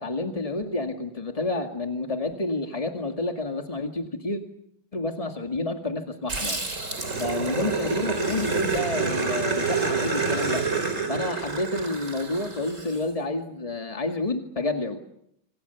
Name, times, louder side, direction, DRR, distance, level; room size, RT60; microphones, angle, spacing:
voice 1, 0.0-4.4 4.9-6.6 7.2-10.6 11.1-15.0, left 2 dB, 25° left, 4 dB, 0.8 m, -29 dB
Growling, 6.3-13.0, right 4 dB, 20° right, 3.6 m, -28 dB
28.0 x 25.5 x 7.0 m, 0.76 s
omnidirectional pair, 4.2 m